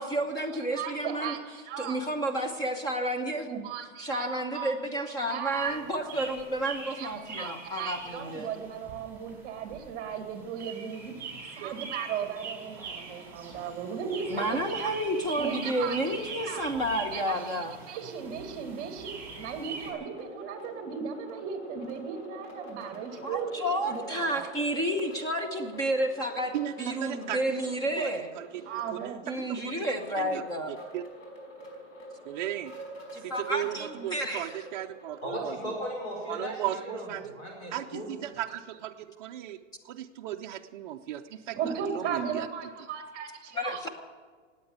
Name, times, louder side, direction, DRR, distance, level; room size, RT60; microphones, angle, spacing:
voice 1, 0.0-1.3 1.8-3.6 4.0-8.5 14.3-17.8 23.2-28.3 29.2-30.7 33.1-34.6 43.5-43.9, right 1 dB, 10° left, 4 dB, 1.0 m, -31 dB
voice 2, 0.5-2.0 3.5-5.8 7.0-11.1 11.4-14.9 15.4-16.0 16.4-16.6 17.1-17.5 17.9-24.5 28.6-29.2 41.5-43.8, right 7 dB, 25° right, 5 dB, 2.1 m, -36 dB
sound 1, 5.5-19.9, right 4 dB, 5° right, 4.6 m, -43 dB
sound 2, 19.7-36.4, right 1 dB, 90° left, 5.1 m, -47 dB
voice 3, 26.5-29.8 30.1-31.0 32.3-32.7 33.2-35.6 36.3-37.4 37.7-39.6 39.8-42.5, right 12 dB, 40° right, 2 dB, 0.5 m, -36 dB
voice 4, 35.2-38.1, equal, 45° left, -1 dB, 5.2 m, -37 dB
18.5 x 8.8 x 8.1 m, 1.5 s
supercardioid pair, 165°, 36 cm